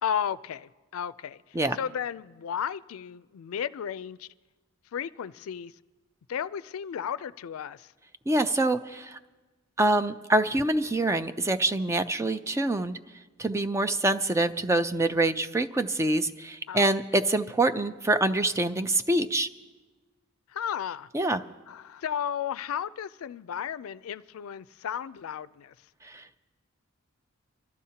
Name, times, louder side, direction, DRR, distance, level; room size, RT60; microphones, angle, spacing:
voice 1, 0.0-1.4 1.7-4.3 4.9-5.7 6.3-7.9 16.7-17.0 20.5-21.1 21.7-25.7, left 8 dB, 90° left, 0.4 m, -34 dB
voice 2, 8.3-9.2 9.8-13.0 13.4-19.5 21.1-21.4 26.1-26.4, right 2 dB, 15° right, 0.4 m, -25 dB
24.5 x 13.0 x 2.8 m
head